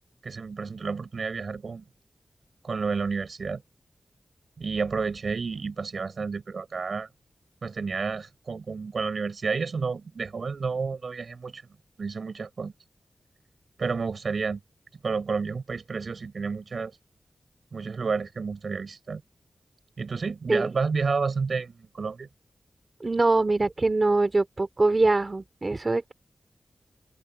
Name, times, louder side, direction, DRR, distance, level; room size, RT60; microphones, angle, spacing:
voice 1, 0.2-1.8 2.6-3.6 4.6-7.1 7.6-11.6 12.0-12.7 13.8-14.6 15.0-17.0 17.7-19.2 20.0-22.3, right 4 dB, 65° right, 4.9 m, -30 dB
voice 2, 23.0-26.1, right 2 dB, 30° right, 3.9 m, -23 dB
wide cardioid pair, 125°, 0 cm